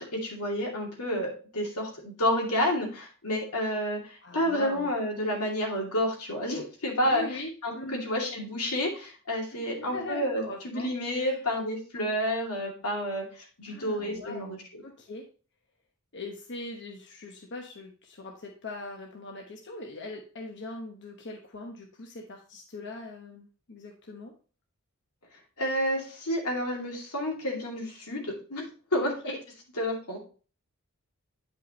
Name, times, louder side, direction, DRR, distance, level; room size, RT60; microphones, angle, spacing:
voice 1, 0.0-7.2 7.6-13.2 13.6-14.8 25.6-28.6 28.9-29.3 29.8-30.2, equal, 90° left, 0 dB, 2.5 m, -30 dB
voice 2, 4.2-4.9 7.0-8.1 9.5-11.4 13.7-14.6 14.8-15.2 16.1-24.3 29.3-29.4, left 2 dB, 55° left, 1 dB, 1.0 m, -41 dB
9.1 x 5.5 x 3.0 m, 0.38 s
head